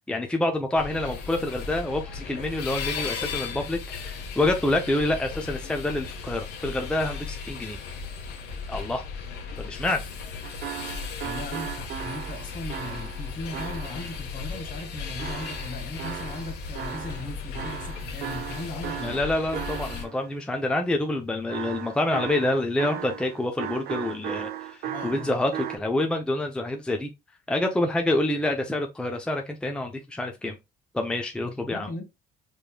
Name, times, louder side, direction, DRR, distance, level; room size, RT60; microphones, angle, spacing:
voice 1, 0.1-7.8 8.7-9.0 9.6-10.1 19.0-27.1 27.5-30.6 30.9-31.9, left 1 dB, 5° left, 0.5 m, -27 dB
sound 1, 0.8-20.1, left 5 dB, 80° left, 1.2 m, -36 dB
sound 2, 10.4-14.2 15.2-17.3 17.5-20.3 21.5-25.8, right 11 dB, 70° right, 0.6 m, -36 dB
voice 2, 11.2-19.2 24.8-25.4 31.4-32.0, left 2 dB, 50° left, 1.7 m, -38 dB
5.1 x 3.1 x 2.2 m
cardioid pair, 110°, 17 cm